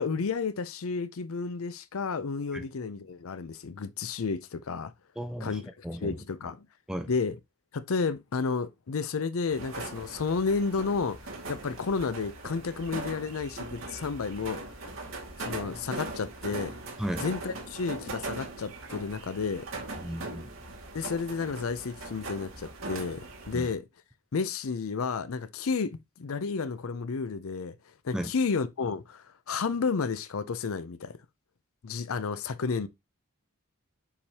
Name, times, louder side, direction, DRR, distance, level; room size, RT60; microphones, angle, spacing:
voice 1, 0.0-4.9 5.4-6.7 7.1-7.4 7.7-14.6 15.4-16.7 17.2-19.7 20.9-23.9 24.3-31.2 31.8-32.9, left 5 dB, 70° left, 0.5 m, -31 dB
voice 2, 5.2-5.5 5.8-6.1 6.9-7.1 17.0-17.2 20.0-20.5 23.5-23.7 28.1-28.3, equal, 5° right, 0.6 m, -34 dB
sound 1, 9.5-23.7, right 2 dB, 65° right, 2.0 m, -40 dB
7.1 x 5.0 x 2.8 m
head